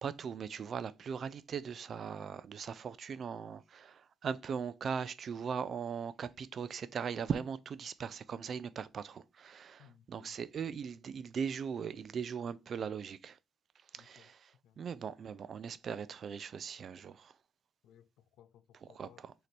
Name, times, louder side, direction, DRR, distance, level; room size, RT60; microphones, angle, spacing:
voice 1, 0.0-13.4 13.9-17.4 18.9-19.3, right 6 dB, 55° right, 0.3 m, -39 dB
voice 2, 9.8-10.3 14.0-14.3 14.6-14.8 17.8-19.2, left 10 dB, 85° left, 0.3 m, -62 dB
4.1 x 2.8 x 3.2 m
cardioid pair, 90°, 0 cm